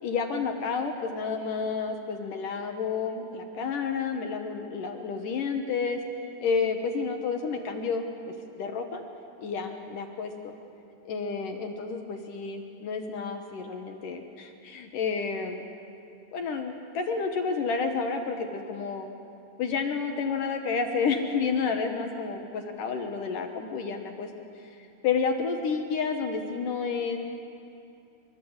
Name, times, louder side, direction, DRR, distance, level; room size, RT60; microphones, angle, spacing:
voice 1, 0.0-6.0 6.4-8.0 8.6-9.0 9.4-10.5 11.1-15.6 16.3-19.1 19.6-24.3 24.6-24.7 25.0-27.2, left 5 dB, 60° left, 4 dB, 2.6 m, -30 dB
25.5 x 25.0 x 8.1 m, 2.6 s
omnidirectional pair, 4.8 m